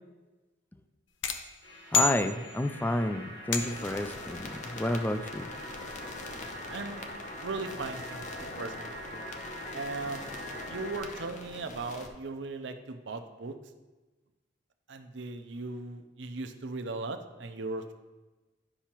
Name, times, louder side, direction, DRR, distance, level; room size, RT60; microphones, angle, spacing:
sound 1, 1.2-2.8 3.5-4.0, left 4 dB, 80° left, 0.6 m, -30 dB
sound 2, 1.6-11.0, equal, 60° left, 2.1 m, -44 dB
voice 1, 1.9-5.5, left 1 dB, 10° left, 8 dB, 0.3 m, -30 dB
sound 3, 3.6-12.1, left 2 dB, 40° left, 0.7 m, -44 dB
voice 2, 6.7-7.1 7.4-9.2 9.7-10.4 10.7-13.5 14.9-17.9, right 3 dB, 70° right, 7 dB, 0.6 m, -38 dB
10.0 x 5.6 x 3.0 m, 1.2 s
head